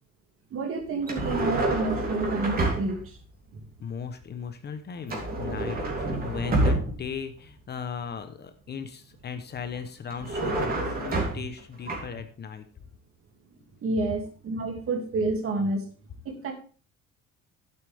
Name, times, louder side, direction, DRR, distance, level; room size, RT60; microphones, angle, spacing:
voice 1, 0.5-3.1 3.5-3.6 13.8-15.9 16.2-16.5, right 3 dB, 45° right, 4 dB, 2.6 m, -29 dB
sound 1, 1.0-3.1 5.1-7.2 10.1-11.6 11.9-12.1, right 2 dB, 30° right, 3.1 m, -28 dB
voice 2, 3.8-12.6, left 6 dB, 35° left, 9 dB, 1.0 m, -37 dB
11.0 x 8.6 x 3.5 m, 0.39 s
cardioid pair, 145°, 30 cm